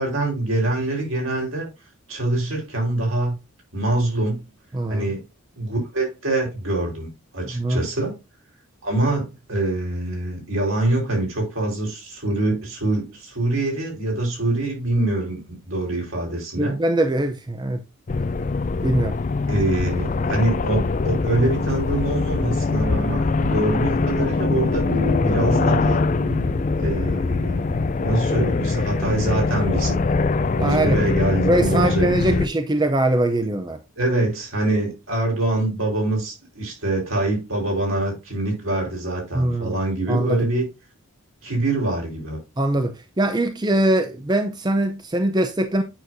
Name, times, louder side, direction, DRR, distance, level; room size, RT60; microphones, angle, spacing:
voice 1, 0.0-1.7 2.1-3.3 3.7-4.4 4.9-5.2 5.6-8.1 8.8-16.8 19.5-24.8 25.2-26.0 26.8-27.8 28.0-30.0 30.6-32.5 34.0-40.6 41.4-42.4, right 2 dB, 70° right, 4.3 m, -24 dB
voice 2, 4.7-5.0 7.5-7.8 16.6-17.8 18.8-19.2 30.6-31.0 31.4-33.8 39.3-39.8 40.1-40.4 42.6-45.8, right 1 dB, 20° right, 0.5 m, -22 dB
sound 1, 18.1-32.5, left 3 dB, 35° left, 0.4 m, -22 dB
sound 2, 24.9-27.7, left 2 dB, 50° right, 1.6 m, -32 dB
8.9 x 6.3 x 2.6 m
head